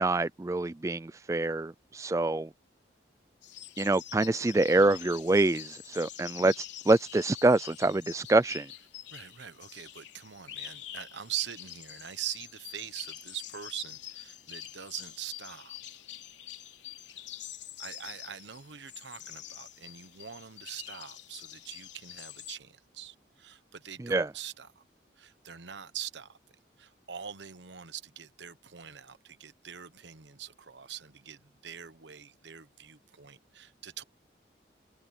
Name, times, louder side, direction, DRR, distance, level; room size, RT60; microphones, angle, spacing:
voice 1, 0.0-2.5 3.8-8.7 24.0-24.3, right 2 dB, 15° right, 0.3 m, -26 dB
sound 1, 3.4-22.6, left 12 dB, 80° left, 3.2 m, -46 dB
voice 2, 9.1-15.8 17.8-24.8 25.2-26.4 26.8-34.0, right 10 dB, 80° right, 1.1 m, -43 dB
head